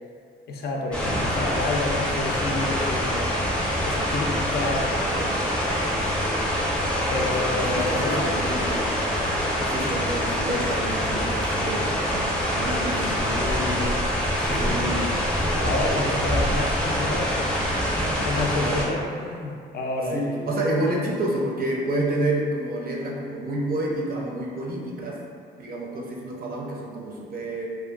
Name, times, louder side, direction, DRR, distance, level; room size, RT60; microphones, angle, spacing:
voice 1, 0.5-3.4 3.8-4.9 7.1-8.3 13.2-14.0 14.3-15.1 15.6-17.5 17.9-20.5, left 2 dB, 55° left, 0 dB, 0.4 m, -29 dB
sound 1, 0.9-18.9, equal, 5° left, 0.5 m, -25 dB
voice 2, 4.9-5.4 7.3-8.9 9.7-13.5 14.5-14.9 18.6-18.9 20.1-25.2 25.6-27.7, right 1 dB, 50° right, -2 dB, 0.5 m, -29 dB
2.6 x 2.4 x 2.3 m, 2.2 s
cardioid pair, 90°, 20 cm